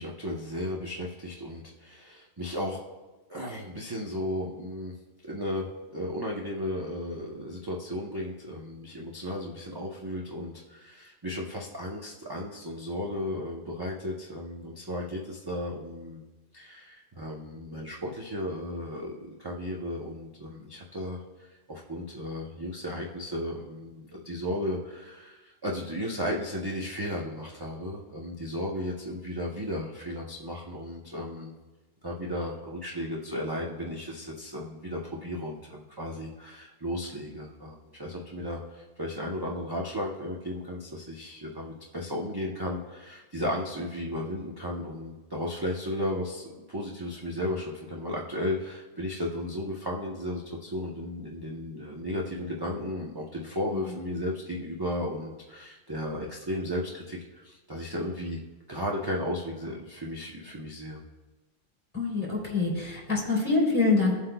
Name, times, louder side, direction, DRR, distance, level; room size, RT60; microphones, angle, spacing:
voice 1, 0.0-2.8 3.3-4.9 5.2-5.6 5.9-16.2 16.5-31.5 32.0-58.4 58.7-61.0, left 1 dB, 20° right, -3 dB, 0.7 m, -34 dB
voice 2, 61.9-64.1, left 3 dB, 25° left, -4 dB, 3.2 m, -25 dB
17.0 x 7.8 x 2.3 m, 1.2 s
omnidirectional pair, 1.3 m